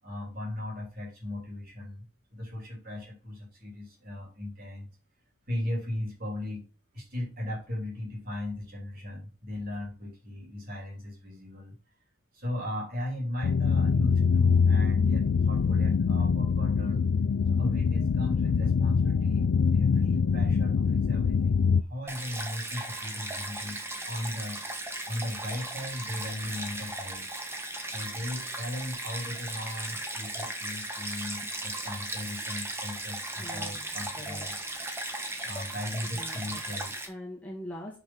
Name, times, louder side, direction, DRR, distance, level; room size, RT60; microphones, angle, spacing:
voice 1, 0.0-2.0 2.3-4.9 5.5-6.6 6.9-11.7 12.3-17.1 17.5-23.8 24.0-24.6 25.0-27.3 27.9-34.6 35.4-36.9, left 1 dB, 45° right, -1 dB, 3.4 m, -37 dB
sound 1, 13.4-21.8, left 5 dB, 80° left, 0.4 m, -24 dB
Stream, 22.1-37.1, right 1 dB, 10° right, 1.1 m, -37 dB
voice 2, 33.4-33.8 34.2-34.4 36.1-36.6 37.1-38.0, left 1 dB, 5° left, -4 dB, 2.0 m, -42 dB
6.1 x 5.3 x 5.6 m, 0.34 s
head